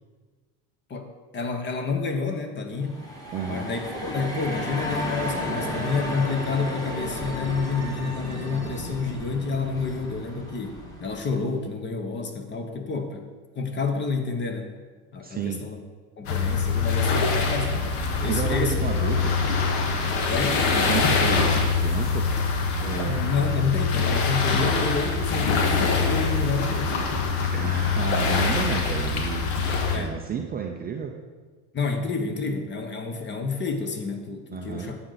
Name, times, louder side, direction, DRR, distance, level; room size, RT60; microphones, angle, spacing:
voice 1, 0.9-3.0 3.5-13.3 13.6-14.7 15.1-15.8 16.2-19.2 20.3-20.7 23.0-27.0 29.9-30.2 31.7-35.0, left 4 dB, 25° left, 6 dB, 1.0 m, -29 dB
sound 1, 2.8-11.5, left 1 dB, 10° left, 1.7 m, -33 dB
voice 2, 3.3-3.7 15.2-15.6 18.3-19.5 20.7-22.3 22.8-23.2 27.5-29.5 29.9-31.1 34.5-34.9, right 6 dB, 20° right, 2 dB, 0.5 m, -31 dB
sound 2, 16.2-30.0, left 4 dB, 65° left, 1.7 m, -24 dB
11.5 x 7.8 x 4.0 m, 1.4 s
supercardioid pair, 140°, 46 cm